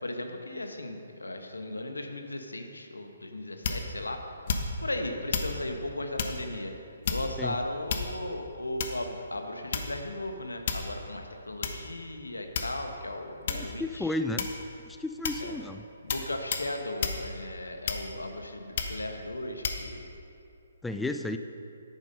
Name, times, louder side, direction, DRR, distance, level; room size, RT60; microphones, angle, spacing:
voice 1, 0.0-4.2 4.8-6.7 7.1-14.1 15.4-15.6 16.0-20.1, left 1 dB, 90° left, 4 dB, 1.3 m, -36 dB
sound 1, 3.6-4.0 4.5-4.9 5.3-5.6 6.2-6.4 7.0-7.4 7.9-8.3 8.8-9.1 9.7-10.1 10.7-11.0 11.6-11.8 12.5-13.0 13.5-13.7 14.4-14.7 15.2-15.5 16.1-16.3 16.5-16.7 17.0-17.2 17.9-18.3 18.8-19.0 19.6-19.8, left 5 dB, 50° left, 1.1 m, -31 dB
voice 2, 13.5-14.5 14.9-15.8 20.8-21.4, left 2 dB, 5° left, 7 dB, 0.4 m, -33 dB
10.5 x 9.0 x 5.4 m, 2.6 s
figure-of-eight pair, 140°, 0 cm